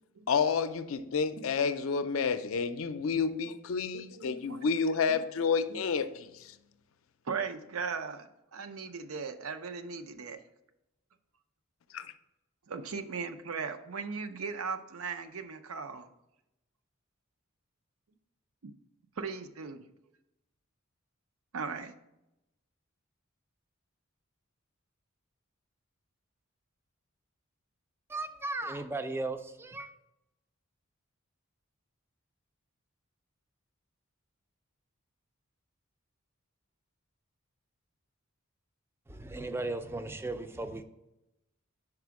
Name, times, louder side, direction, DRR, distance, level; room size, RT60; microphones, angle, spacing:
voice 1, 0.3-6.6 11.9-12.1, left 5 dB, 70° left, 11 dB, 0.4 m, -30 dB
voice 2, 3.9-4.6 5.1-5.2 5.7-5.8 7.3-10.4 12.7-16.1 18.6-18.7 19.2-19.8 21.5-21.9, right 5 dB, 85° right, 8 dB, 0.5 m, -38 dB
voice 3, 28.1-29.9 39.1-40.8, right 2 dB, 10° right, 9 dB, 0.3 m, -36 dB
5.0 x 4.8 x 4.7 m, 0.90 s
head